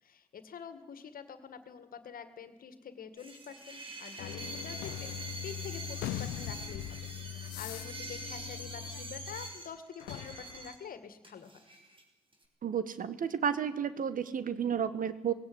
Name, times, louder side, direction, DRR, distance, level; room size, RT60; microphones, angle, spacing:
voice 1, 0.0-11.6, left 7 dB, 60° left, 11 dB, 2.0 m, -47 dB
sound 1, 3.2-10.8 11.2-12.0 12.3-12.4, right 2 dB, 30° right, 5.2 m, -45 dB
sound 2, 4.2-9.6 10.0-10.8, left 13 dB, 80° left, 0.7 m, -41 dB
voice 2, 12.6-15.3, right 7 dB, 55° right, 14 dB, 1.5 m, -32 dB
18.5 x 17.0 x 9.6 m, 1.1 s
hypercardioid pair, 45°, 17 cm